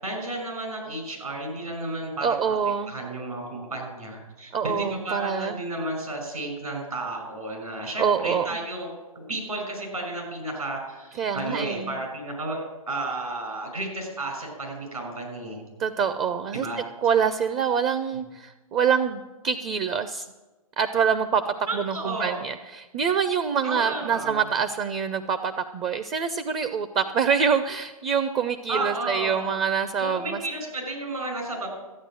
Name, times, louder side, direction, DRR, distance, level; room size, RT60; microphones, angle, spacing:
voice 1, 0.0-2.6 2.9-8.9 9.2-15.6 16.5-16.8 21.7-22.4 23.6-24.4 28.7-29.5 30.0-31.7, right 2 dB, 80° right, 1 dB, 5.8 m, -32 dB
voice 2, 2.2-2.9 4.5-5.6 8.0-8.6 11.2-12.0 15.8-16.7 17.0-20.3 20.8-30.4, right 6 dB, 20° right, 10 dB, 0.4 m, -25 dB
14.0 x 9.0 x 6.2 m, 1.1 s
figure-of-eight pair, 125°, 19 cm